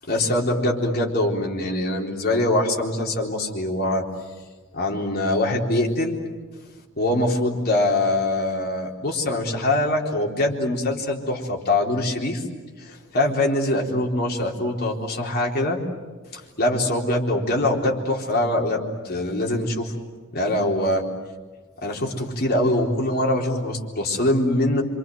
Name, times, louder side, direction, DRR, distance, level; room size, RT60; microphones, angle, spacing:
voice 1, 0.1-4.1 4.7-6.2 7.0-12.4 12.8-15.8 16.3-19.9 20.3-21.0 21.8-24.8, left 1 dB, 45° left, 0 dB, 3.9 m, -23 dB
27.5 x 26.0 x 7.8 m, 1.4 s
head